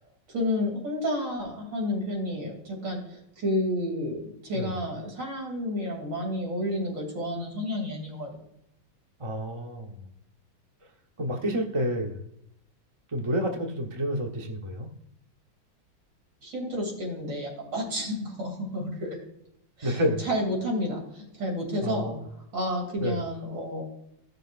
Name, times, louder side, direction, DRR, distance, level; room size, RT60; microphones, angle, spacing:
voice 1, 0.3-8.4 16.4-19.2 19.8-22.1 22.5-23.8, left 1 dB, 60° right, 0 dB, 3.5 m, -31 dB
voice 2, 9.2-10.1 11.2-12.2 13.1-14.9 19.8-20.2 21.8-22.2 23.0-23.2, equal, 30° right, 2 dB, 0.5 m, -29 dB
15.5 x 6.7 x 2.5 m, 0.77 s
omnidirectional pair, 2.2 m